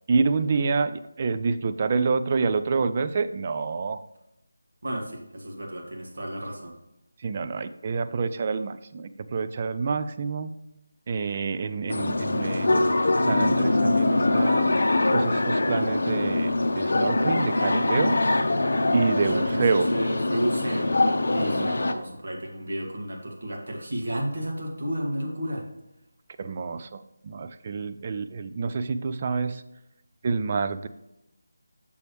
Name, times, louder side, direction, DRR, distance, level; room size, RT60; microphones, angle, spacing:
voice 1, 0.1-4.0 7.2-10.5 11.1-13.0 13.2-14.7 15.1-18.2 18.9-19.9 21.5-21.7 26.4-29.6 30.2-30.9, right 4 dB, 30° right, 10 dB, 0.4 m, -27 dB
voice 2, 4.8-6.7 19.2-21.0 21.3-25.7, right 1 dB, 60° right, 0 dB, 1.9 m, -32 dB
sound 1, 11.9-21.9, left 2 dB, 60° left, 0.7 m, -23 dB
6.9 x 6.7 x 3.1 m, 0.90 s
figure-of-eight pair, 160°, 0 cm